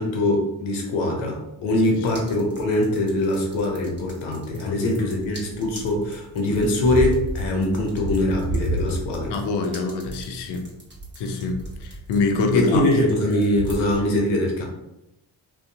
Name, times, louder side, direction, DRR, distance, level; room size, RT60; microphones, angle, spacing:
voice 1, 0.0-9.4 12.5-14.6, left 1 dB, 90° left, 0 dB, 0.7 m, -23 dB
sound 1, 1.9-14.0, right 2 dB, 25° right, 1.1 m, -32 dB
voice 2, 9.3-10.6 11.2-12.8, left 3 dB, 60° left, 4 dB, 0.6 m, -25 dB
2.6 x 2.2 x 2.7 m, 0.89 s
supercardioid pair, 55°, 47 cm